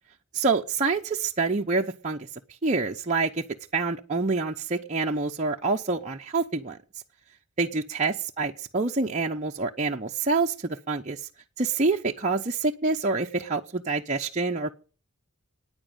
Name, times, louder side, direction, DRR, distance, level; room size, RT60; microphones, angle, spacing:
voice 1, 0.3-2.3 2.6-3.4 3.7-6.8 7.6-11.3 11.6-14.7, right 3 dB, 30° right, 0 dB, 0.9 m, -27 dB
14.5 x 9.9 x 9.0 m, 0.38 s
head